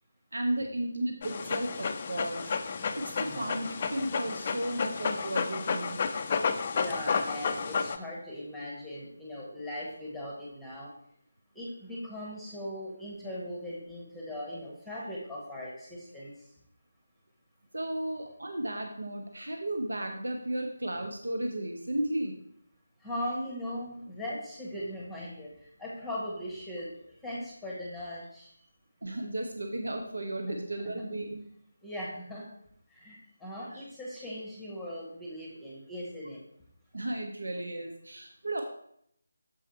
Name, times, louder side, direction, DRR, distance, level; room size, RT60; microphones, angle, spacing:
voice 1, 0.3-2.5 3.0-6.0 17.7-22.3 29.0-31.4 33.7-33.8 36.9-38.6, right 1 dB, 65° right, 3 dB, 0.8 m, -34 dB
Dog, 1.2-8.0, left 5 dB, 30° left, 0.4 m, -31 dB
voice 2, 6.7-10.9 11.5-16.3 23.0-26.9 27.2-28.5 30.5-30.6 31.8-32.4 32.9-36.4, left 1 dB, ahead, -5 dB, 1.2 m, -39 dB
7.1 x 4.9 x 4.3 m, 0.71 s
figure-of-eight pair, 155°, 0 cm